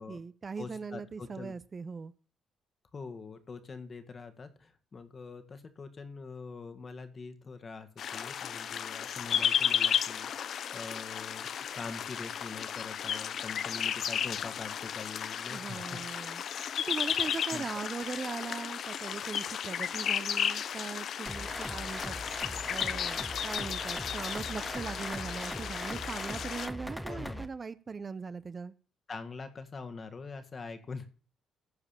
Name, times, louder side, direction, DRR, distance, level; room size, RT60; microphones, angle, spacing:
voice 1, 0.0-2.1 15.5-16.4 16.9-22.2 22.7-28.7, right 5 dB, 35° right, 15 dB, 0.6 m, -40 dB
voice 2, 0.6-1.5 2.9-11.5 11.7-16.0 17.2-17.6 27.1-27.4 29.1-31.1, left 4 dB, 40° left, 7 dB, 1.8 m, -44 dB
sound 1, 8.0-26.7, left 8 dB, 65° left, 0.6 m, -34 dB
sound 2, 21.3-27.5, equal, ahead, 1.2 m, -40 dB
15.0 x 4.9 x 7.1 m, 0.43 s
cardioid pair, 90°, 0 cm